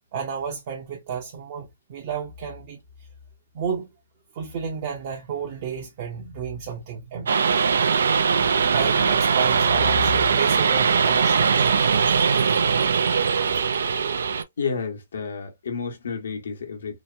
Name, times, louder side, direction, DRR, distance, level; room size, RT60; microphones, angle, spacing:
voice 1, 0.1-2.8 3.5-3.9 4.3-7.3 8.7-11.7, right 5 dB, 35° right, 0.6 m, -31 dB
sound 1, 7.3-14.4, right 6 dB, 80° right, 0.3 m, -20 dB
voice 2, 14.6-17.0, left 5 dB, 80° left, 1.1 m, -30 dB
2.8 x 2.1 x 2.5 m
hypercardioid pair, 165°, 0 cm